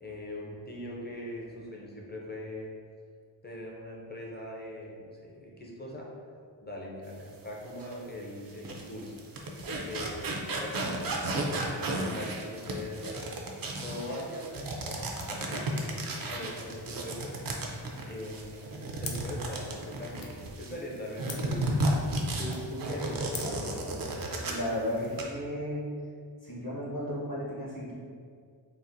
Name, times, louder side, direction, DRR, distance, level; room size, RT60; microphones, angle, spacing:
voice 1, 0.0-2.7 3.4-9.2 9.8-11.0 11.3-13.1 13.8-14.5 14.8-17.5 18.1-23.6, left 1 dB, 20° left, -3 dB, 0.6 m, -41 dB
sound 1, 7.8-7.9 8.5-20.7 21.2-24.7 25.0-25.2, right 2 dB, 50° right, 0.5 m, -33 dB
sound 2, 19.0-24.4, left 5 dB, 65° left, 0.5 m, -47 dB
voice 2, 24.5-25.9 26.4-27.9, left 1 dB, 45° left, -7 dB, 0.9 m, -34 dB
4.0 x 2.1 x 2.6 m, 2.1 s
wide cardioid pair, 80°, 47 cm